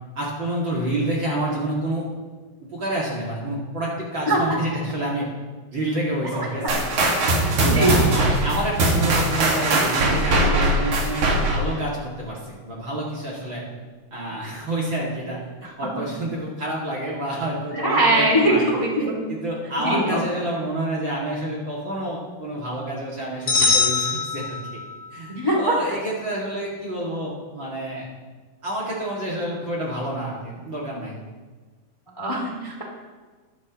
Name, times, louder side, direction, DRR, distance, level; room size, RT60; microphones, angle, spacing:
voice 1, 0.1-2.1 2.7-5.3 5.7-6.9 7.6-13.6 14.1-15.4 15.8-18.7 19.3-24.6 25.1-28.1 28.6-31.2, right 1 dB, 35° right, -5 dB, 2.9 m, -28 dB
voice 2, 6.3-6.7 7.7-8.1 15.6-15.7 17.8-19.2 19.8-20.2 25.3-25.7 32.2-32.8, right 1 dB, 10° left, -2 dB, 2.1 m, -21 dB
sound 1, 6.7-11.8, right 2 dB, 60° right, 3.3 m, -21 dB
sound 2, 23.5-25.0, left 4 dB, 30° left, 4.4 m, -22 dB
22.0 x 12.0 x 3.1 m, 1.4 s
omnidirectional pair, 4.0 m